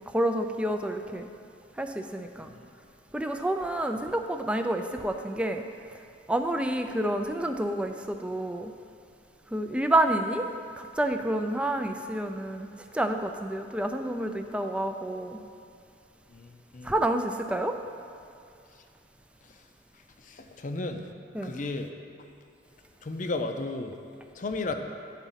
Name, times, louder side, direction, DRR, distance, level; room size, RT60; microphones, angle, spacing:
voice 1, 0.1-1.3 1.8-2.5 3.1-5.6 6.3-8.7 9.5-10.5 10.8-12.7 12.9-15.4 16.8-17.8 21.3-21.5, right 1 dB, 5° right, 5 dB, 0.4 m, -29 dB
voice 2, 16.3-17.0 18.7-18.8 19.4-19.6 19.9-21.1 21.4-21.9 22.2-22.3 23.0-24.0 24.3-24.7, left 2 dB, 45° left, 6 dB, 0.5 m, -35 dB
11.0 x 4.1 x 5.6 m, 2.4 s
head